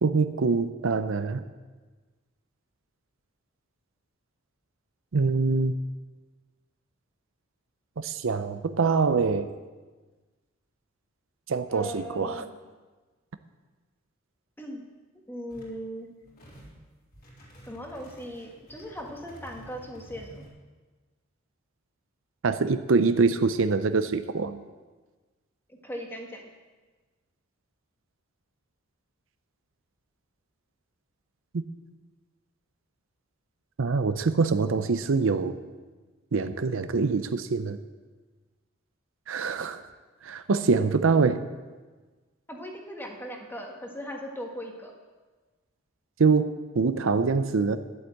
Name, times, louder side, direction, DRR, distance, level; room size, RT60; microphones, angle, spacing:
voice 1, 0.0-1.4 5.1-5.7 8.0-9.5 11.5-12.4 22.4-24.6 33.8-35.5 36.3-37.8 39.3-39.8 40.2-41.5 46.2-47.8, right 4 dB, 65° right, 11 dB, 0.6 m, -24 dB
voice 2, 11.7-12.5 14.6-14.8 15.3-16.1 17.7-20.4 25.7-26.5 42.5-44.9, equal, 10° left, 1 dB, 1.7 m, -38 dB
sound 1, 15.5-15.8 16.2-16.8 17.1-20.5, right 1 dB, 45° left, 4.1 m, -50 dB
11.5 x 8.1 x 7.7 m, 1.3 s
head